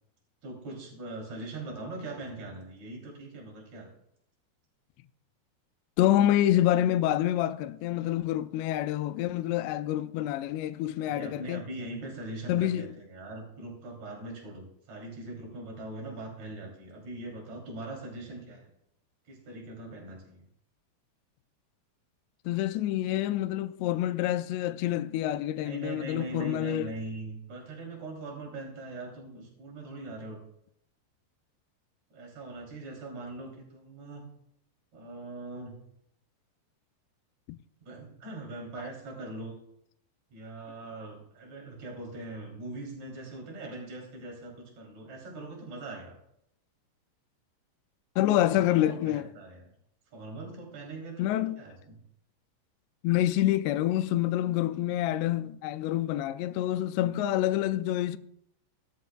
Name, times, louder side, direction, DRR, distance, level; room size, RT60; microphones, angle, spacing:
voice 1, 0.4-3.9 11.0-18.7 19.3-20.5 25.6-30.4 32.1-34.3 34.9-35.8 37.8-39.6 40.3-46.2 48.5-49.7 50.1-51.3 51.6-52.0, right 2 dB, 40° right, 3.9 m, -41 dB
voice 2, 6.0-11.6 12.5-12.9 22.5-26.9 37.5-37.6 48.2-49.2 51.2-51.6 53.0-58.2, left 13 dB, 85° left, 2.6 m, -27 dB
18.0 x 12.5 x 2.3 m
omnidirectional pair, 5.1 m